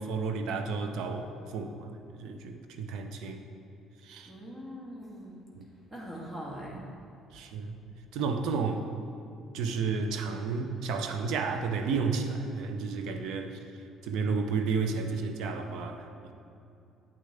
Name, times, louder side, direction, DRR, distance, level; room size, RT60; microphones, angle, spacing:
voice 1, 0.0-3.4 4.0-4.3 5.5-5.7 7.3-7.7 8.1-8.8 9.5-13.6 14.0-16.3, right 4 dB, 75° right, 6 dB, 0.6 m, -32 dB
voice 2, 4.3-5.4 5.9-6.9, equal, 25° right, -3 dB, 1.5 m, -41 dB
8.3 x 6.5 x 3.4 m, 2.6 s
cardioid pair, 90°, 0 cm